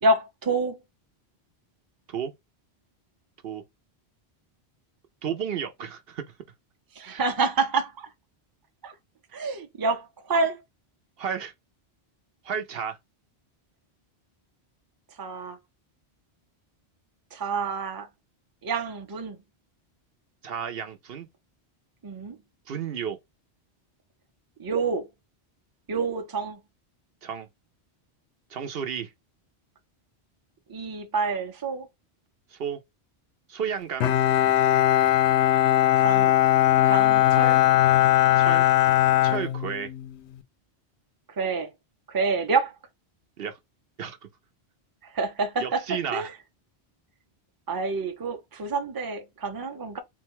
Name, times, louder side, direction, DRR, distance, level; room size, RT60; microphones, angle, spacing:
voice 1, 0.0-0.8 7.0-8.1 8.8-8.9 9.3-10.6 15.2-15.6 17.3-18.1 18.6-19.4 22.0-22.4 24.6-25.0 25.9-26.6 30.7-31.9 36.0-36.4 36.8-37.6 41.4-41.7 42.1-42.7 45.1-45.8 46.1-46.3 47.7-50.0, right 3 dB, 25° right, 0.6 m, -27 dB
voice 2, 5.2-6.2 7.1-7.2 11.2-11.5 12.4-13.0 20.4-21.3 22.7-23.2 27.2-27.5 28.5-29.1 32.5-32.8 33.5-34.1 38.4-38.7 39.2-39.9 43.4-43.6 44.0-44.2 45.6-46.3, right 7 dB, 65° right, 0.9 m, -32 dB
Bowed string instrument, 34.0-40.2, left 13 dB, 90° left, 0.8 m, -20 dB
3.8 x 2.2 x 4.4 m
omnidirectional pair, 1.1 m